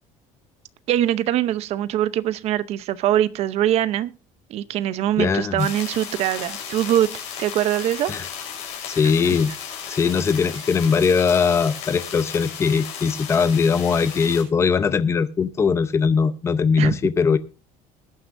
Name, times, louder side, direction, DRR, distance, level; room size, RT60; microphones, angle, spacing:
voice 1, 0.9-4.1 4.5-7.1 7.4-8.1 9.3-9.4 16.8-16.9, right 12 dB, 45° right, 0.8 m, -22 dB
voice 2, 5.2-5.7 8.1-8.3 8.9-9.5 9.9-17.4, left 5 dB, 20° left, 0.7 m, -20 dB
sound 1, 5.6-14.4, left 8 dB, 50° left, 5.7 m, -35 dB
20.5 x 9.9 x 2.6 m
cardioid pair, 175°, 15 cm